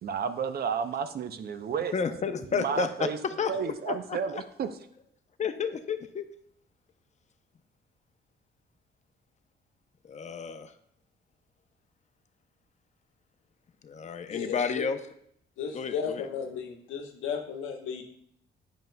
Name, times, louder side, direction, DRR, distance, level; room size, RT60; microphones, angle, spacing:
voice 1, 0.0-1.9 2.5-3.2 3.5-4.7, right 6 dB, 50° right, 10 dB, 0.6 m, -31 dB
voice 2, 1.9-4.4 5.4-6.3 10.0-10.7 13.8-15.0 15.7-16.3, left 6 dB, 35° left, 9 dB, 0.6 m, -31 dB
voice 3, 14.3-14.9 15.6-18.0, left 6 dB, 85° left, 4 dB, 1.0 m, -34 dB
9.1 x 5.4 x 2.2 m, 0.70 s
cardioid pair, 90°, 20 cm